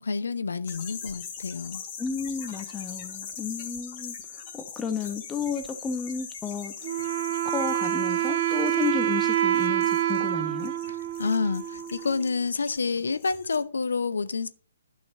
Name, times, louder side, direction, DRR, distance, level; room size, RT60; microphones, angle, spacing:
voice 1, 0.0-1.8 10.9-14.5, left 4 dB, 70° left, 1.0 m, -29 dB
sound 1, 0.6-13.6, left 6 dB, 35° left, 3.9 m, -42 dB
voice 2, 2.0-4.1 4.5-6.7 7.4-10.7, left 6 dB, 10° left, 1.2 m, -32 dB
Wind instrument woodwind instrument, 6.8-12.3, right 11 dB, 40° right, 1.4 m, -27 dB
11.5 x 6.2 x 6.7 m
figure-of-eight pair, 135°, 0 cm